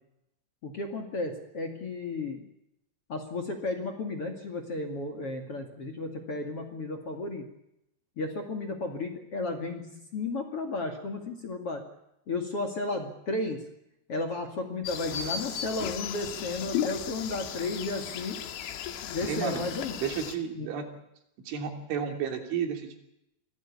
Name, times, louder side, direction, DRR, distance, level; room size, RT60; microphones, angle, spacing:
voice 1, 0.6-2.4 3.1-7.5 8.2-11.8 12.3-13.6 14.1-18.4 19.0-20.0 20.6-20.7, left 2 dB, 40° left, 3 dB, 2.5 m, -33 dB
sound 1, 14.9-20.4, left 9 dB, 85° left, 4.1 m, -35 dB
voice 2, 19.3-19.7 20.0-20.9 21.5-23.0, right 7 dB, 85° right, 4 dB, 5.4 m, -32 dB
25.5 x 16.5 x 8.6 m, 0.82 s
omnidirectional pair, 5.3 m